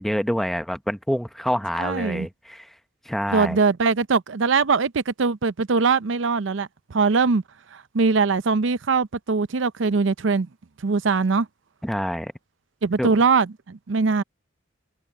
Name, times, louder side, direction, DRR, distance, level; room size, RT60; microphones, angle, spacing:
voice 1, 0.0-2.7 3.0-3.6 11.8-12.3 13.0-13.1, equal, ahead, 0.8 m, -26 dB
voice 2, 1.8-2.3 3.3-7.4 7.7-10.5 10.8-11.5 12.8-14.2, right 4 dB, 75° right, 0.6 m, -22 dB
head